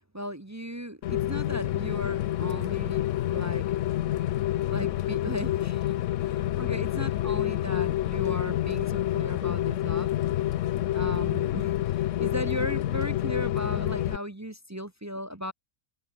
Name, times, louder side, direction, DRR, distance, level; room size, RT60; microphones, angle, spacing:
voice 1, 0.1-3.0 3.3-3.7 4.7-5.8 6.3-10.1 10.9-11.7 12.2-15.5, equal, 15° right, 0.8 m, -36 dB
Rain, 1.0-14.2, left 13 dB, 70° left, 0.9 m, -28 dB
omnidirectional pair, 1.4 m